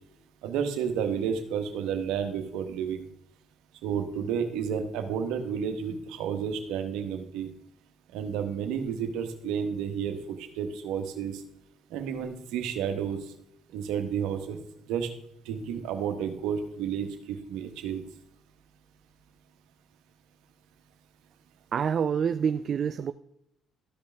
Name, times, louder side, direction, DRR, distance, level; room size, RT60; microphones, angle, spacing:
voice 1, 0.4-3.1 3.8-7.5 8.1-11.4 11.9-13.2 13.7-14.6 14.9-15.1 15.4-18.0, right 7 dB, 80° right, 6 dB, 1.2 m, -31 dB
voice 2, 21.7-23.1, right 7 dB, 50° right, 11 dB, 0.3 m, -27 dB
13.5 x 5.2 x 3.4 m, 0.78 s
supercardioid pair, 75°, 0 cm